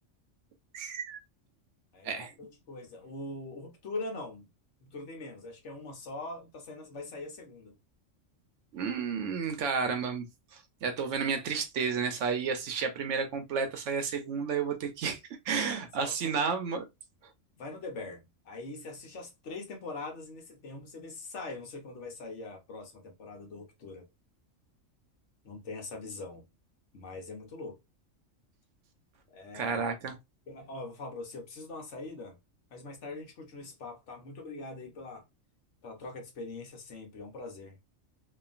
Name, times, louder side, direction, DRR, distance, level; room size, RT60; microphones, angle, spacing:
voice 1, 0.7-1.2 2.0-2.3 8.7-10.2 10.5-15.2 15.4-16.8 29.5-30.2, right 5 dB, 70° right, 0.9 m, -31 dB
voice 2, 1.9-4.5 4.8-7.7 15.6-16.4 17.6-24.1 25.4-26.4 26.9-27.8 29.3-29.8 30.5-32.4 32.7-35.2 35.8-37.8, left 3 dB, 65° left, 1.2 m, -42 dB
2.9 x 2.4 x 2.4 m
omnidirectional pair, 1.3 m